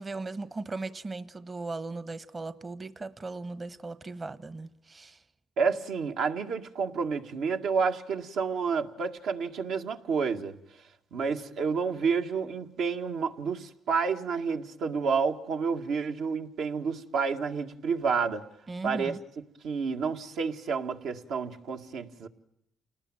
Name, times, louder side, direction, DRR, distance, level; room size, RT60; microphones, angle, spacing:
voice 1, 0.0-5.2 18.7-19.2, right 3 dB, 30° right, 1.1 m, -38 dB
voice 2, 5.6-10.6 11.1-18.5 18.8-19.2 19.6-22.3, right 5 dB, 80° right, 1.9 m, -29 dB
29.0 x 19.0 x 9.0 m
cardioid pair, 90°, 0 cm